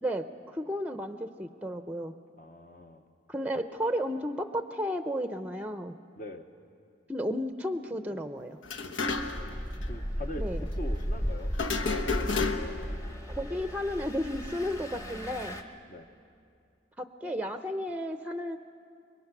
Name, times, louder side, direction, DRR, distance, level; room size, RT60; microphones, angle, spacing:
voice 1, 0.0-2.2 3.3-5.9 7.1-8.6 10.4-10.7 13.4-15.6 17.0-18.6, equal, 5° right, 9 dB, 0.6 m, -33 dB
voice 2, 2.4-3.0 6.2-6.5 9.1-9.6 9.8-12.5 15.9-16.1, left 1 dB, 45° left, 5 dB, 0.9 m, -43 dB
sound 1, 8.6-9.6 9.8-9.9 11.5-12.9, left 4 dB, 85° left, 1.2 m, -31 dB
Engine, 9.1-15.6, equal, 15° left, 1.1 m, -35 dB
26.5 x 23.0 x 6.0 m, 2.3 s
head